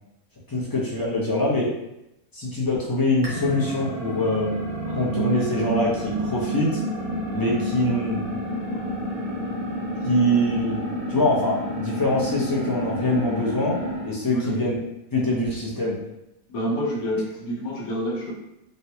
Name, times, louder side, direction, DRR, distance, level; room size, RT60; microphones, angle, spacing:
voice 1, 0.5-1.7 2.3-4.5 4.9-6.8 7.3-8.2 10.0-10.8 11.1-14.7 15.1-16.0, left 1 dB, 25° left, -6 dB, 0.5 m, -24 dB
sound 1, 3.2-14.1, right 1 dB, 85° right, 1.3 m, -29 dB
voice 2, 14.3-14.6 16.5-18.3, equal, 90° left, -2 dB, 1.2 m, -28 dB
3.6 x 2.2 x 2.8 m, 0.87 s
omnidirectional pair, 1.5 m